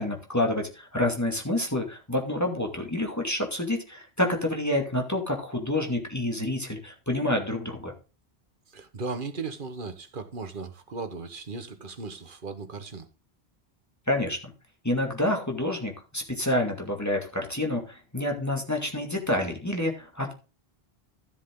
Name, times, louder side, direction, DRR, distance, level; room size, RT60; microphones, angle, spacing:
voice 1, 0.0-7.9 14.1-14.4 14.8-20.3, left 1 dB, 15° left, 2.4 m, -28 dB
voice 2, 8.7-13.1, right 4 dB, 55° right, 1.5 m, -37 dB
13.5 x 7.4 x 3.8 m
omnidirectional pair, 1.1 m